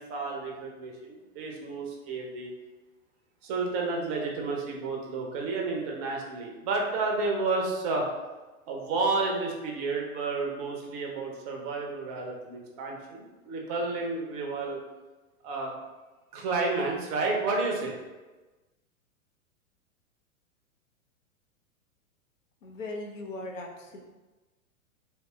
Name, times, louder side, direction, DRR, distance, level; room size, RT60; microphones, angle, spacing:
voice 1, 0.0-2.5 3.4-8.1 8.7-14.8 15.4-15.7 16.3-18.0, right 3 dB, 25° right, 0 dB, 0.5 m, -31 dB
voice 2, 22.6-24.0, left 2 dB, 65° left, 1 dB, 0.6 m, -38 dB
3.6 x 2.8 x 2.2 m, 1.2 s
figure-of-eight pair, 100°, 42 cm